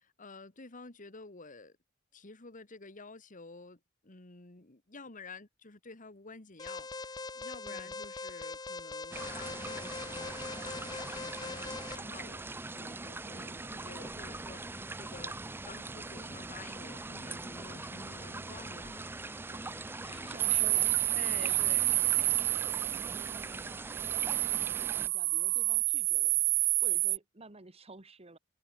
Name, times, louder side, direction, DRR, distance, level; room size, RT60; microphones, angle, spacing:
voice 1, 0.0-1.8 2.1-15.4 15.7-19.1 20.0-20.4 21.1-22.0, left 3 dB, 40° left, 1.9 m, -50 dB
Alarm, 6.6-12.0, left 3 dB, 20° left, 0.7 m, -41 dB
voice 2, 7.6-8.0 13.3-13.7 19.5-21.7 22.8-28.4, right 2 dB, 30° right, 1.7 m, -53 dB
sound 1, 9.1-25.1, right 2 dB, 10° right, 0.4 m, -42 dB
sound 2, 20.4-27.2, right 21 dB, 90° right, 0.5 m, -29 dB
head